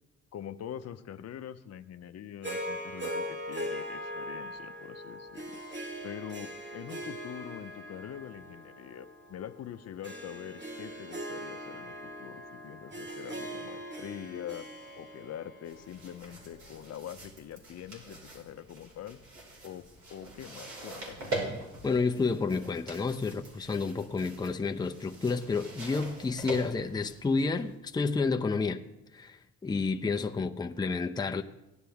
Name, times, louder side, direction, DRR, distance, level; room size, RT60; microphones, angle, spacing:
voice 1, 0.3-5.6 6.0-14.6 14.9-19.2 19.6-21.3, left 10 dB, 60° left, 0.7 m, -44 dB
Harp, 2.4-16.8, equal, 35° right, 2.3 m, -41 dB
sound 1, 15.6-27.8, right 2 dB, 65° right, 5.0 m, -43 dB
voice 2, 21.8-28.8 29.1-31.4, left 4 dB, 15° left, 0.6 m, -30 dB
16.5 x 9.6 x 3.5 m
cardioid pair, 90°, 30 cm